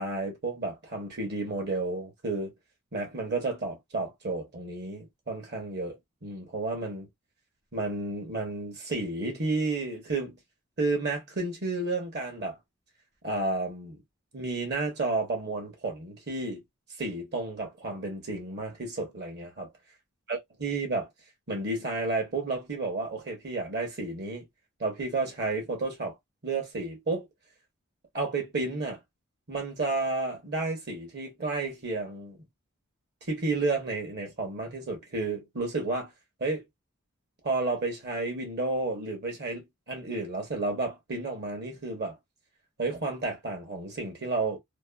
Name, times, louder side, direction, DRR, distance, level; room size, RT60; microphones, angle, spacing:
voice 1, 0.0-2.5 2.9-6.0 6.2-7.1 7.7-10.4 10.8-12.6 13.2-14.0 14.3-16.6 17.0-19.7 20.3-21.1 21.5-24.5 24.8-26.1 26.4-27.3 28.1-29.0 29.5-32.4 33.3-36.1 36.4-36.6 37.4-42.2 42.8-44.6, right 3 dB, 50° right, 1.2 m, -31 dB
2.9 x 2.3 x 2.3 m
head